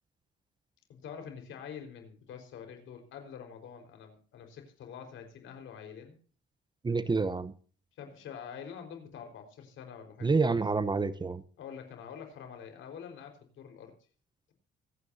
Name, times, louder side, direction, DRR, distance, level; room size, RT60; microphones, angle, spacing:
voice 1, 0.9-6.2 8.0-10.5 11.6-13.9, left 7 dB, 80° left, 5 dB, 4.6 m, -46 dB
voice 2, 6.8-7.5 10.2-11.4, right 4 dB, 20° right, 15 dB, 0.9 m, -28 dB
25.0 x 9.6 x 2.7 m, 0.42 s
cardioid pair, 90°, 20 cm